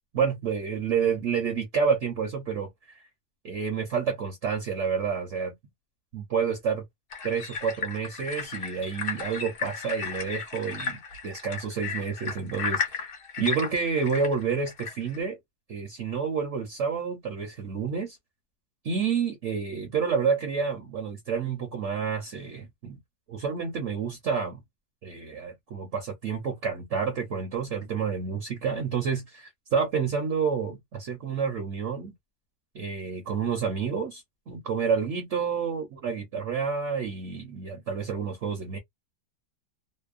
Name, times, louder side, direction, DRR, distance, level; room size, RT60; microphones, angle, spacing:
voice 1, 0.1-3.0 3.4-5.5 6.1-6.8 7.2-15.4 15.7-18.2 18.8-23.0 23.3-24.6 25.0-32.1 32.7-38.8, right 6 dB, 55° right, 0.9 m, -29 dB
sound 1, 7.1-15.2, left 5 dB, 50° left, 0.7 m, -34 dB
2.8 x 2.1 x 2.4 m
omnidirectional pair, 1.7 m